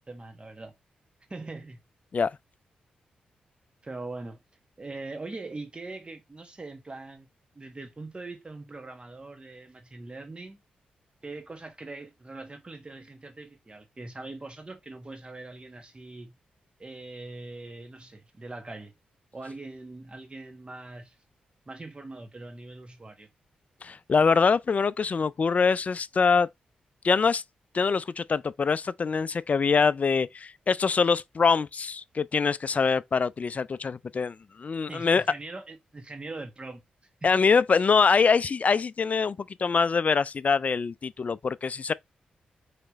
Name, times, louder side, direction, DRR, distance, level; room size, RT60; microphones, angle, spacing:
voice 1, 0.1-0.7 1.3-1.8 3.8-4.4 4.8-7.3 7.5-10.6 11.2-16.3 16.8-18.9 19.3-21.1 21.7-23.3 34.9-36.8 37.2-37.3 37.7-37.8, right 2 dB, 30° right, 1.4 m, -41 dB
voice 2, 23.8-26.5 27.0-27.4 27.7-35.2 37.2-41.9, left 5 dB, 45° left, 0.4 m, -24 dB
4.9 x 3.2 x 3.0 m
supercardioid pair, 45°, 3 cm